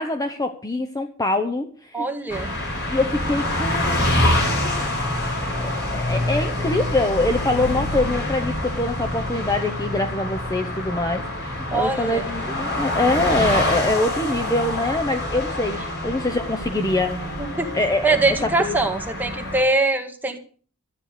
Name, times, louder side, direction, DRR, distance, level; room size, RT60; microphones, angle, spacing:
voice 1, 0.0-2.1 2.9-4.1 4.6-4.9 5.6-17.2 17.7-18.8, left 2 dB, 15° left, 6 dB, 0.9 m, -24 dB
voice 2, 1.9-2.5 11.7-12.3 17.4-17.7 18.0-20.4, right 3 dB, 10° right, 3 dB, 2.0 m, -22 dB
sound 1, 2.3-19.6, left 1 dB, 50° left, 7.5 m, -26 dB
13.0 x 9.6 x 6.7 m, 0.42 s
head